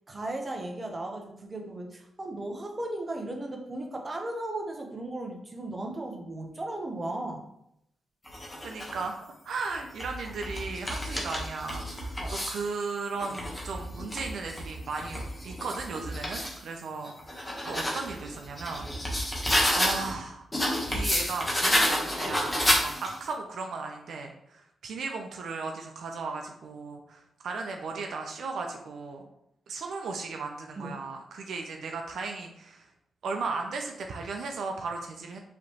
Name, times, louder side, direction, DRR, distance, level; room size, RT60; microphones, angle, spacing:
voice 1, 0.1-7.4 12.2-12.3 30.8-30.9, right 1 dB, 30° right, 2 dB, 0.8 m, -36 dB
sound 1, 8.3-9.0 9.7-12.7 13.1-16.6 17.0-20.1 20.5-23.3, equal, 20° left, 1.0 m, -30 dB
voice 2, 8.6-9.2 9.4-19.3 19.7-20.5 20.9-29.3 29.7-32.9 33.2-35.4, right 4 dB, 80° right, 3 dB, 0.5 m, -36 dB
4.9 x 3.0 x 2.9 m, 0.78 s
cardioid pair, 95°, 0 cm